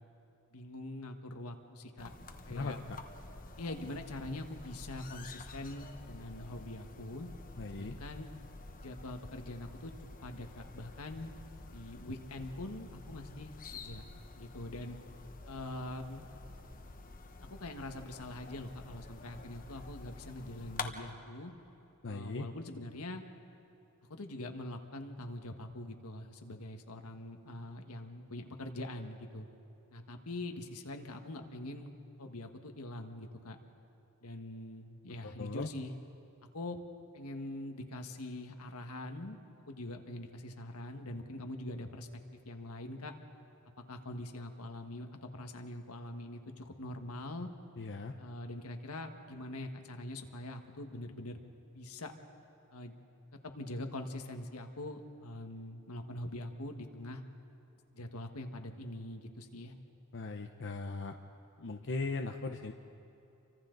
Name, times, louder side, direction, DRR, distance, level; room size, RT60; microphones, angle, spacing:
voice 1, 0.5-2.1 2.4-2.8 3.6-7.3 7.7-8.3 8.8-9.9 10.2-11.3 11.7-14.0 14.3-15.0 15.5-16.3 17.5-21.5 22.1-23.2 24.1-29.5 29.9-33.6 34.2-35.9 36.5-36.8 37.1-39.4 39.7-43.1 43.8-47.5 48.2-51.4 51.7-52.1 52.7-52.9 53.4-57.2 57.9-59.7, left 1 dB, 80° left, 5 dB, 1.6 m, -43 dB
sound 1, 2.0-20.9, left 3 dB, 40° left, 1.2 m, -49 dB
voice 2, 2.5-3.0 7.6-7.9 22.0-22.4 35.2-35.7 47.8-48.1 60.1-61.1 61.6-62.7, left 3 dB, 60° left, 4 dB, 0.8 m, -38 dB
29.5 x 24.5 x 4.0 m, 2.9 s
head